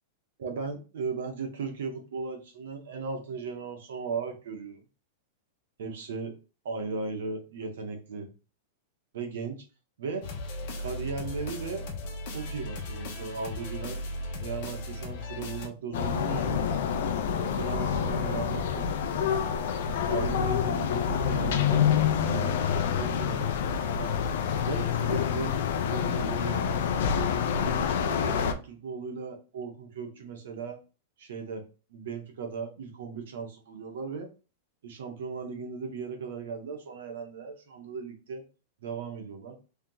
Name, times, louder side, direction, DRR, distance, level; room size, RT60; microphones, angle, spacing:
voice 1, 0.4-4.8 5.8-6.4 6.6-8.3 9.1-9.6 10.0-10.3 10.8-11.9 12.3-14.0 14.4-16.7 17.3-19.3 20.1-21.9 22.2-24.1 24.6-25.6 25.9-26.7 27.5-30.8 31.2-34.3 34.8-38.5 38.8-39.6, right 5 dB, 80° right, 1.2 m, -37 dB
sound 1, 10.2-15.7, left 1 dB, 50° left, 1.1 m, -37 dB
sound 2, 15.9-28.5, left 7 dB, 65° left, 0.6 m, -27 dB
3.5 x 2.9 x 3.8 m
supercardioid pair, 160°, 0 cm